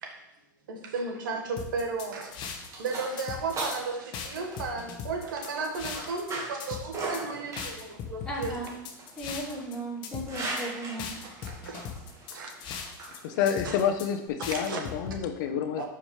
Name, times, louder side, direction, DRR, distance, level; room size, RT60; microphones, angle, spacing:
voice 1, 0.7-2.3 2.8-8.6 11.5-11.9 12.3-12.5 13.6-13.7 14.5-14.8 15.8-15.9, right 4 dB, 80° right, 2 dB, 1.5 m, -34 dB
sound 1, 1.6-2.9 3.2-3.8 4.1-6.3 6.6-7.2 7.6-9.7 10.0-10.6 11.0-13.2 13.5-14.1 14.4-15.2, left 7 dB, 45° left, 1.3 m, -38 dB
sound 2, 2.0-14.3, right 2 dB, 30° right, 1.7 m, -40 dB
voice 2, 8.2-8.7 9.2-11.2, right 1 dB, 5° left, -6 dB, 2.9 m, -36 dB
voice 3, 13.2-15.9, left 8 dB, 65° left, 7 dB, 0.8 m, -28 dB
11.5 x 4.9 x 3.3 m, 0.87 s
hypercardioid pair, 120°, 11 cm